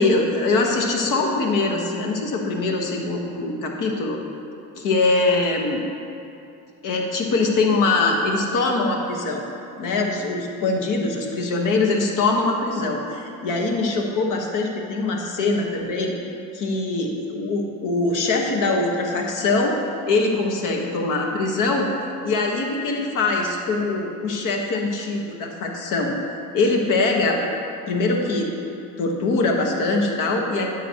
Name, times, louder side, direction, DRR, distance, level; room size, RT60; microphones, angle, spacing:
voice 1, 0.0-4.2 4.8-5.8 6.8-9.4 9.8-16.1 16.5-19.8 20.1-21.9 22.2-26.2 26.5-27.4 27.9-28.5 29.0-30.7, left 3 dB, 60° left, 1 dB, 1.3 m, -22 dB
9.3 x 7.5 x 2.9 m, 2.6 s
supercardioid pair, 95°, 36 cm